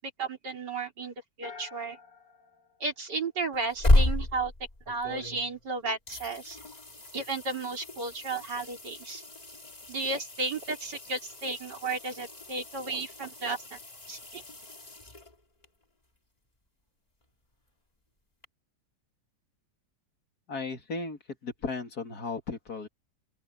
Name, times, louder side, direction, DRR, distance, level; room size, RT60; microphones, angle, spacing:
voice 1, 0.2-2.0 2.8-4.5 4.9-6.6 7.1-9.2 9.9-13.8 14.1-14.4, right 3 dB, 75° right, 4.5 m, -34 dB
sound 1, 1.4-3.7, left 5 dB, 80° left, 3.0 m, -49 dB
sound 2, 3.5-5.7 6.1-15.7 18.4-18.5, left 1 dB, 20° left, 2.9 m, -32 dB
voice 2, 20.5-22.9, left 4 dB, 60° left, 2.9 m, -35 dB
open air
omnidirectional pair, 1.9 m